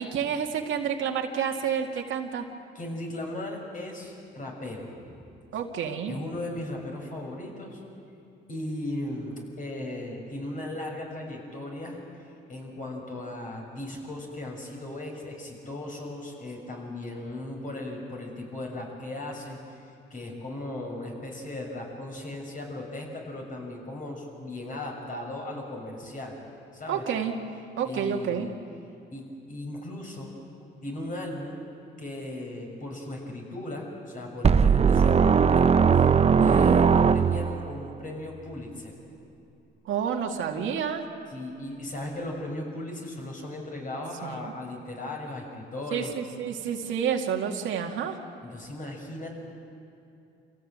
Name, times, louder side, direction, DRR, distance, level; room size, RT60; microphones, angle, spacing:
voice 1, 0.0-2.5 5.5-6.1 26.9-27.3 27.8-28.5 36.3-36.8 39.8-41.1 44.2-44.5 45.9-48.2, right 7 dB, 80° right, 2 dB, 2.1 m, -29 dB
voice 2, 2.7-5.2 6.1-7.8 8.5-12.0 12.5-19.6 20.1-26.4 26.7-27.0 27.8-28.5 29.1-30.3 30.8-31.6 32.0-35.7 35.9-39.0 41.3-46.1 48.4-49.4, left 1 dB, 40° left, 0 dB, 6.6 m, -37 dB
sound 1, 34.4-37.7, right 6 dB, 30° right, 0.7 m, -19 dB
26.5 x 16.5 x 8.8 m, 2.7 s
cardioid pair, 90°, 20 cm